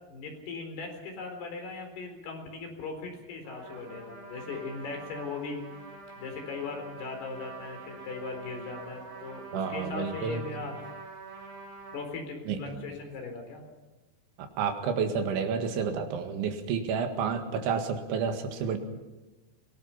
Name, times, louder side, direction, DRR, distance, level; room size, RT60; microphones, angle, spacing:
voice 1, 0.1-5.6 6.2-10.7 11.9-13.6, left 4 dB, 60° left, 4 dB, 5.9 m, -39 dB
Trumpet, 3.4-12.0, right 3 dB, 60° right, 7.0 m, -46 dB
voice 2, 9.5-10.4 12.5-12.6 14.6-18.8, right 6 dB, 85° right, 5 dB, 4.2 m, -30 dB
25.0 x 18.5 x 5.8 m, 1.1 s
omnidirectional pair, 5.3 m